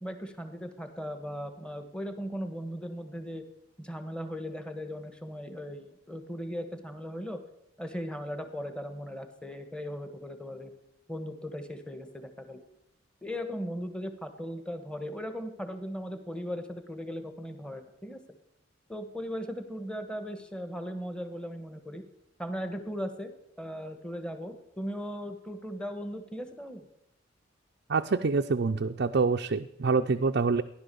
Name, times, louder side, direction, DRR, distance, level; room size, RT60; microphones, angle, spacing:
voice 1, 0.0-3.4 3.8-7.4 7.8-10.7 11.1-12.6 13.2-18.2 18.9-22.0 22.4-23.3 23.6-26.8, equal, 5° left, 8 dB, 1.3 m, -38 dB
voice 2, 27.9-30.6, right 4 dB, 55° right, 4 dB, 0.5 m, -26 dB
15.5 x 11.0 x 6.9 m, 0.84 s
head